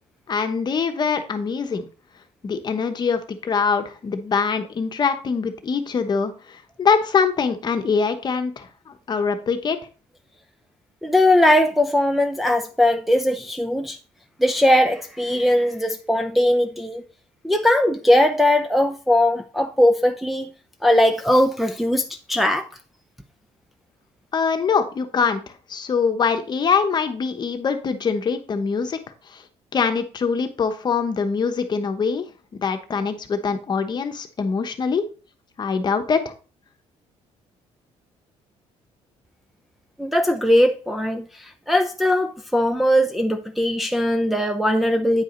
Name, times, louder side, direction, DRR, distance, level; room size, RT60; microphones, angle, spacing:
voice 1, 0.3-1.9 2.4-9.8 24.3-29.0 29.3-29.4 29.7-32.2 32.5-35.0 35.6-36.3, left 5 dB, 35° left, 1.0 m, -23 dB
voice 2, 11.0-14.0 14.4-17.0 17.4-20.5 20.8-22.7 40.0-45.2, left 1 dB, ahead, 0.6 m, -19 dB
9.1 x 4.9 x 3.8 m
cardioid pair, 125°, 12 cm